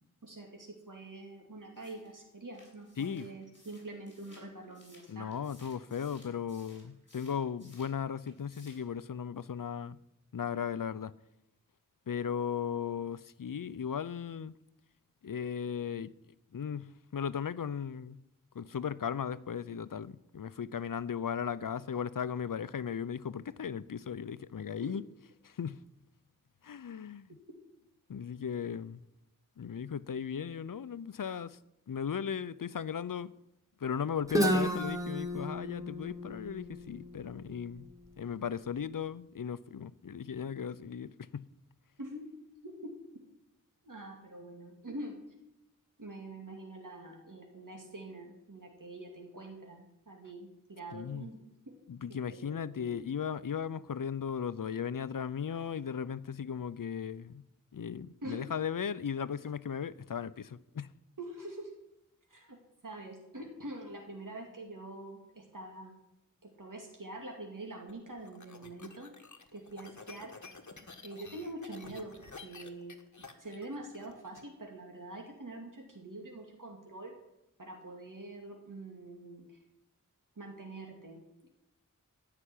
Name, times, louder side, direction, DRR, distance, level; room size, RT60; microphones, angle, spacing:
voice 1, 0.2-5.3 24.8-24.9 42.0-42.3 42.6-42.9 43.8-45.2 46.0-51.7 52.1-53.0 58.2-58.4 61.2-61.7 62.3-62.6 62.8-65.9 66.4-69.1 69.5-70.3 71.0-77.1 77.6-79.6 80.4-81.5, right 2 dB, 70° right, 2.5 m, -45 dB
sound 1, 1.8-8.0 8.3-8.9, left 1 dB, 35° left, 6.6 m, -60 dB
voice 2, 3.0-3.3 5.1-10.0 10.3-11.1 12.1-14.5 15.2-16.1 16.5-18.2 18.5-25.0 25.4-25.8 26.6-27.3 28.1-29.0 29.6-31.6 31.9-33.3 33.8-37.9 38.2-41.5 50.9-51.2 51.9-57.4 57.7-60.9, left 7 dB, 75° left, 0.6 m, -37 dB
Guitar, 34.3-38.1, equal, 10° right, 1.9 m, -33 dB
sound 2, 67.9-74.4, left 4 dB, 60° left, 1.5 m, -51 dB
15.0 x 5.8 x 9.9 m
wide cardioid pair, 60°, 33 cm